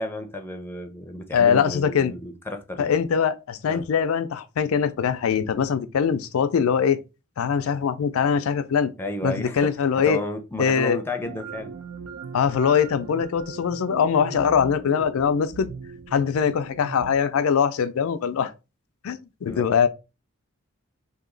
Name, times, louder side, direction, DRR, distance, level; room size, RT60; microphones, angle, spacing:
voice 1, 0.0-2.9 3.7-3.8 9.0-11.7 19.5-19.7, left 1 dB, 10° left, 0.5 m, -32 dB
voice 2, 1.3-2.1 2.8-7.0 7.4-8.9 9.2-10.2 10.6-11.0 12.3-15.7 16.1-18.5 19.0-19.9, left 7 dB, 85° left, 0.4 m, -22 dB
sound 1, 11.2-17.2, right 5 dB, 80° right, 0.4 m, -39 dB
2.9 x 2.7 x 3.8 m
head